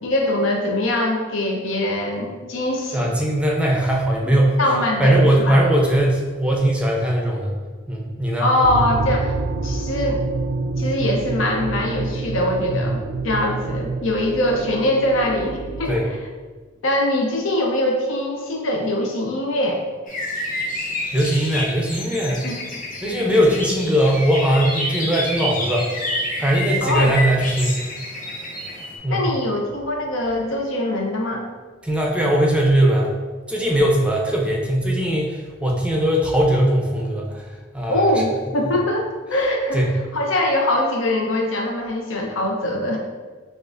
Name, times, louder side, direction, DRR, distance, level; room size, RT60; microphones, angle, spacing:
voice 1, 0.0-3.1 4.2-4.3 4.6-5.6 8.4-10.2 10.8-16.0 16.8-19.8 22.4-22.6 26.8-27.1 29.1-31.4 37.9-39.8 40.1-43.0, left 1 dB, 75° left, 0 dB, 0.7 m, -22 dB
voice 2, 2.9-4.7 5.0-7.6 7.9-8.5 12.7-12.9 15.8-16.1 21.1-22.4 23.0-25.9 26.4-27.9 29.0-29.4 31.8-33.1 33.5-38.1 39.7-39.9, right 1 dB, 5° right, -2 dB, 0.5 m, -20 dB
sound 1, 8.6-16.2, right 3 dB, 65° right, 0.4 m, -27 dB
sound 2, 20.1-29.0, left 1 dB, 45° left, 0.8 m, -29 dB
6.3 x 2.4 x 2.5 m, 1.4 s
head